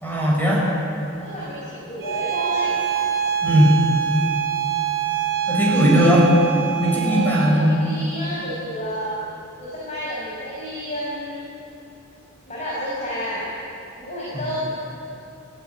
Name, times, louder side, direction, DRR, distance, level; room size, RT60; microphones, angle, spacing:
voice 1, 0.0-0.6 3.4-3.7 5.5-6.2 6.8-7.8, right 1 dB, 10° left, -4 dB, 6.3 m, -17 dB
voice 2, 1.2-2.8 5.8-6.1 7.0-9.2 9.6-11.5 12.5-13.4 14.0-14.7, equal, 30° left, -7 dB, 6.0 m, -30 dB
Bowed string instrument, 2.0-7.6, right 8 dB, 80° right, 2.4 m, -25 dB
23.5 x 17.0 x 9.7 m, 2.7 s
head